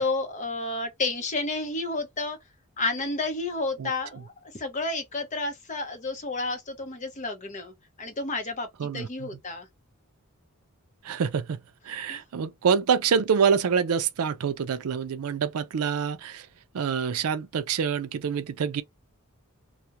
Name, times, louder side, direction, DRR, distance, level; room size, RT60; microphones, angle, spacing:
voice 1, 0.0-2.4 2.8-8.7 8.9-9.7 12.1-12.2, left 3 dB, 35° left, 0.6 m, -31 dB
voice 2, 8.8-9.3 11.0-11.6 11.9-16.5 16.7-18.8, right 6 dB, 80° right, 0.4 m, -26 dB
2.3 x 2.1 x 2.7 m
head